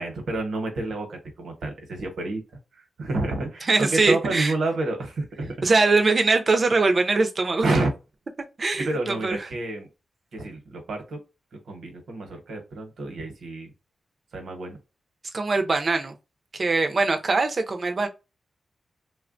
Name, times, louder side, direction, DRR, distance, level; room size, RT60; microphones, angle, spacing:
voice 1, 0.0-2.4 3.0-5.7 7.6-7.9 8.8-9.9 10.3-11.2 11.7-13.7 14.3-14.8, right 2 dB, 80° right, 0.9 m, -29 dB
voice 2, 3.7-4.5 5.6-7.7 8.6-9.4 15.3-16.1 16.5-18.1, right 3 dB, 35° right, 0.4 m, -22 dB
3.2 x 2.1 x 2.5 m
wide cardioid pair, 165°, 0 cm